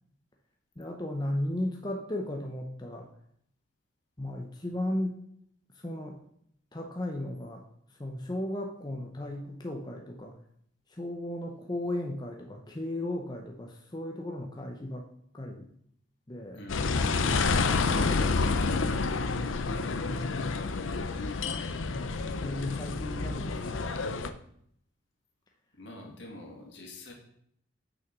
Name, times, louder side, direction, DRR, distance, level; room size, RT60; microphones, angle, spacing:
voice 1, 0.8-3.1 4.2-5.2 5.7-6.2 6.7-7.6 7.9-10.3 10.9-15.1 15.3-15.7 16.3-16.6 17.2-17.5 17.8-18.3 20.0-20.7 21.9-24.3, left 1 dB, 20° left, 1 dB, 0.8 m, -36 dB
voice 2, 16.5-16.9 25.7-27.1, left 1 dB, 65° left, 1 dB, 2.2 m, -45 dB
sound 1, 16.7-24.3, left 4 dB, 80° left, 0.6 m, -29 dB
6.3 x 6.3 x 6.0 m, 0.69 s
head